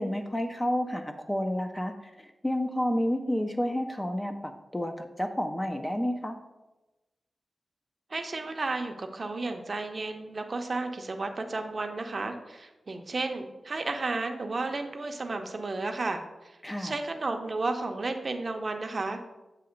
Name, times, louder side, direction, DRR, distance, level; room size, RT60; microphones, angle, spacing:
voice 1, 0.0-6.4 16.6-17.0, equal, 15° left, 6 dB, 0.4 m, -30 dB
voice 2, 8.1-19.2, right 3 dB, 40° right, 5 dB, 0.5 m, -33 dB
7.8 x 2.8 x 5.0 m, 1.1 s
wide cardioid pair, 155°, 0 cm